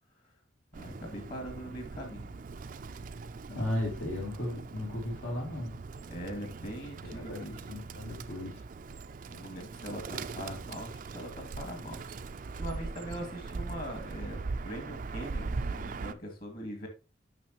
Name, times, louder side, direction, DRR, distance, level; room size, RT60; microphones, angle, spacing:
Bird, 0.7-16.1, right 4 dB, 45° right, 0.4 m, -40 dB
voice 1, 0.8-2.3 6.1-7.5 9.3-12.0 12.4-16.9, equal, 50° left, 4 dB, 2.3 m, -41 dB
voice 2, 3.5-5.8 7.0-7.4 7.7-8.6, left 1 dB, 85° left, -3 dB, 3.2 m, -35 dB
9.2 x 6.0 x 2.9 m, 0.28 s
head